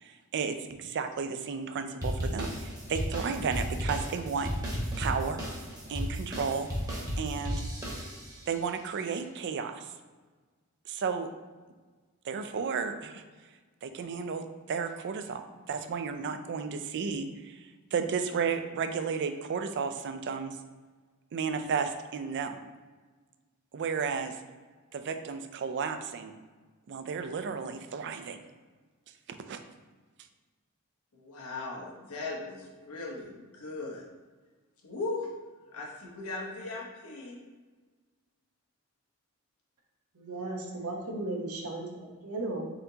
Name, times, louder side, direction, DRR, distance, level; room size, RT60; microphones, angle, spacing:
voice 1, 0.0-4.5 5.0-5.4 5.9-6.7 7.2-7.6 8.5-9.9 10.9-11.3 12.2-13.2 13.8-15.4 15.7-20.6 21.3-22.6 23.7-24.4 24.9-26.3 26.9-28.4 29.3-29.6, right 6 dB, 55° right, 8 dB, 0.4 m, -33 dB
sound 1, 2.0-8.5, equal, 15° right, 1.0 m, -34 dB
voice 2, 31.2-34.0 34.8-35.3 35.7-37.4, left 3 dB, 85° left, -1 dB, 1.0 m, -38 dB
voice 3, 40.1-41.9 42.2-42.7, right 2 dB, 90° right, 1 dB, 0.8 m, -35 dB
4.3 x 3.9 x 2.8 m, 1.4 s
head